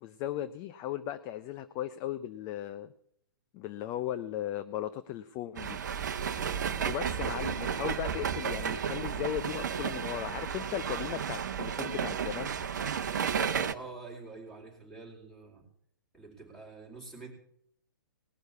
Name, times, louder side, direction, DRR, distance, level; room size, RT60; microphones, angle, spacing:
voice 1, 0.0-2.9 3.5-5.8 6.8-12.5, left 12 dB, 25° left, 12 dB, 0.6 m, -37 dB
sound 1, 5.6-13.7, right 7 dB, 55° right, 0.9 m, -33 dB
voice 2, 13.7-15.6 16.1-17.3, right 3 dB, 5° left, 0 dB, 4.5 m, -47 dB
19.0 x 6.4 x 8.2 m, 0.69 s
figure-of-eight pair, 120°, 11 cm